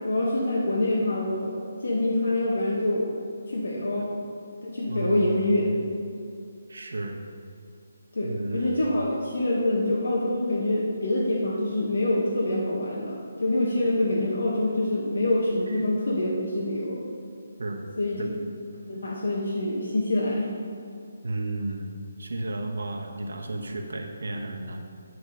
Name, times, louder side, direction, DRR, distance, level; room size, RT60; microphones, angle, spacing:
voice 1, 0.0-1.5 1.8-3.1 3.5-4.1 4.6-5.8 8.1-17.0 18.0-18.2 18.9-20.5, left 1 dB, 85° left, -4 dB, 1.1 m, -25 dB
voice 2, 4.8-5.7 6.7-7.2 8.2-9.0 15.7-15.8 17.6-17.8 18.2-18.3 21.2-24.8, right 2 dB, 75° right, 2 dB, 0.9 m, -33 dB
9.2 x 3.5 x 5.2 m, 2.6 s
hypercardioid pair, 180°, 0 cm